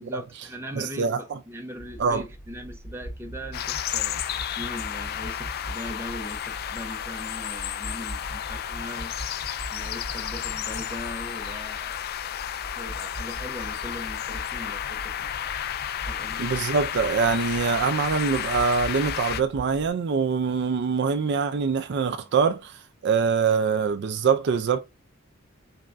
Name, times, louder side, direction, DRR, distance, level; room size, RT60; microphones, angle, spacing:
voice 1, 0.0-4.2 4.5-9.1 9.7-12.0 12.7-15.5 16.0-16.4, equal, 10° right, 0.8 m, -40 dB
voice 2, 0.7-1.4 2.0-2.2 16.4-24.8, right 5 dB, 55° right, 0.4 m, -24 dB
sound 1, 1.8-19.9, equal, 80° left, 1.3 m, -41 dB
sound 2, 3.5-19.4, left 10 dB, 50° left, 0.3 m, -32 dB
4.2 x 3.3 x 2.5 m
head